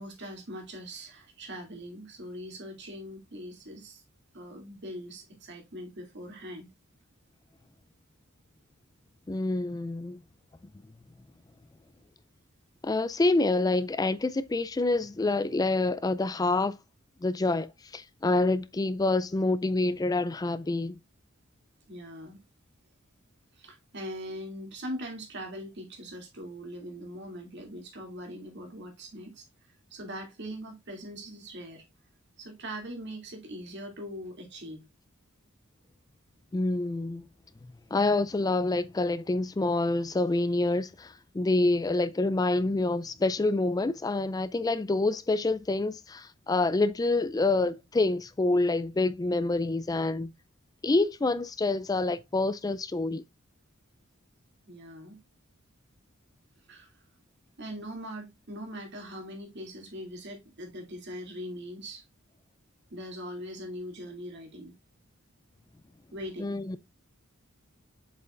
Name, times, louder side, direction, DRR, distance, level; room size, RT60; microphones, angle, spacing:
voice 1, 0.0-4.0 4.3-6.7 21.9-22.4 23.5-29.5 29.9-31.8 32.4-34.8 54.7-55.2 56.7-56.9 57.6-62.0 62.9-64.7 66.1-66.6, equal, 55° right, 2.6 m, -41 dB
voice 2, 9.3-10.2 12.8-16.8 17.2-21.0 36.5-37.3 37.9-50.3 50.8-53.2 66.4-66.8, left 2 dB, 20° left, 0.3 m, -27 dB
7.6 x 5.5 x 2.4 m
head